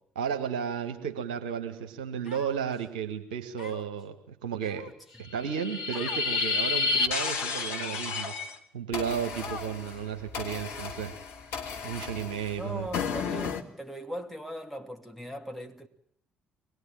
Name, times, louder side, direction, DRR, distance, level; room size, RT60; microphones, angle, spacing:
voice 1, 0.2-4.9 5.2-8.3 8.7-11.2 11.8-12.9, right 7 dB, 75° right, 1.7 m, -33 dB
Human voice, 2.2-2.9 3.6-4.0 4.6-5.2 5.9-6.3 6.9-7.3 8.0-8.1 9.4-10.0, left 3 dB, 80° left, 2.2 m, -44 dB
sound 1, 5.3-8.5 8.9-13.6, left 4 dB, 60° left, 2.2 m, -32 dB
voice 2, 12.6-15.9, right 1 dB, ahead, 2.9 m, -39 dB
24.0 x 20.5 x 8.9 m
figure-of-eight pair, 45°, 5 cm